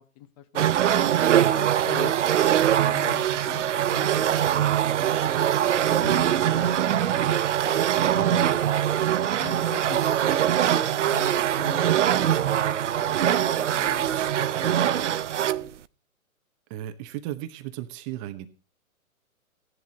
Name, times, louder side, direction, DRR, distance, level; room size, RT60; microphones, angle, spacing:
voice 1, 0.0-2.1 2.6-5.4 5.7-8.6 9.3-10.0 10.5-10.7 11.0-14.1 14.3-15.2 15.5-15.7, left 12 dB, 25° left, 11 dB, 1.0 m, -43 dB
sound 1, 0.6-15.7, right 10 dB, 55° right, 0.8 m, -23 dB
voice 2, 16.7-18.5, right 13 dB, 20° right, 9 dB, 0.8 m, -35 dB
15.5 x 11.0 x 4.0 m, 0.34 s
figure-of-eight pair, 125°, 43 cm